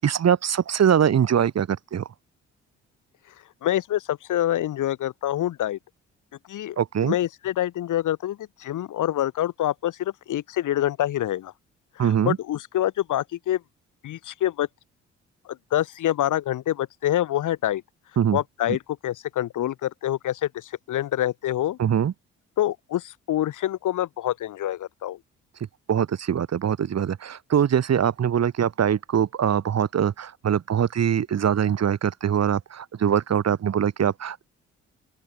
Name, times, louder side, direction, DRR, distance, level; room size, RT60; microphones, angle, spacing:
voice 1, 0.0-2.0 6.8-7.1 12.0-12.4 18.2-18.4 18.7-18.8 21.8-22.1 25.9-34.5, right 8 dB, 50° right, 1.7 m, -23 dB
voice 2, 3.6-5.8 6.5-11.5 12.0-13.6 14.0-14.7 15.4-17.8 18.3-21.8 22.6-25.2, left 12 dB, 65° left, 1.5 m, -26 dB
open air
hypercardioid pair, 45°, 33 cm